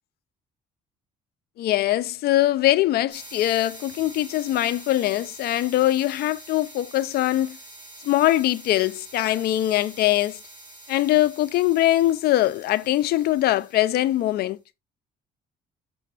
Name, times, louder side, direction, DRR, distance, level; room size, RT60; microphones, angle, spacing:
voice 1, 1.6-7.6 8.0-10.4 10.9-14.6, left 14 dB, 70° left, 0.6 m, -22 dB
sound 1, 3.1-14.4, right 2 dB, 25° right, 4.6 m, -45 dB
6.9 x 4.6 x 4.0 m
cardioid pair, 110°, 17 cm